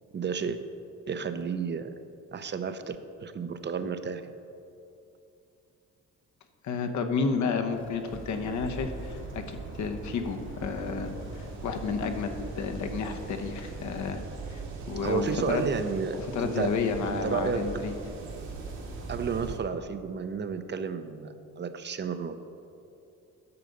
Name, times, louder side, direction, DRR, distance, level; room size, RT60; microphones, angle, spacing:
voice 1, 0.1-0.6 1.1-1.9 2.3-4.2 15.0-16.7 17.1-17.7 19.1-22.3, right 6 dB, 35° right, 10 dB, 0.6 m, -32 dB
voice 2, 6.6-14.2 14.5-14.6 14.9-15.6 16.3-17.9, left 5 dB, 70° left, 6 dB, 0.9 m, -31 dB
sound 1, 7.7-14.1, left 3 dB, 40° left, 0.9 m, -51 dB
sound 2, 8.1-19.6, right 3 dB, 70° right, 1.9 m, -40 dB
9.7 x 6.7 x 5.2 m, 2.7 s
cardioid pair, 90°, 30 cm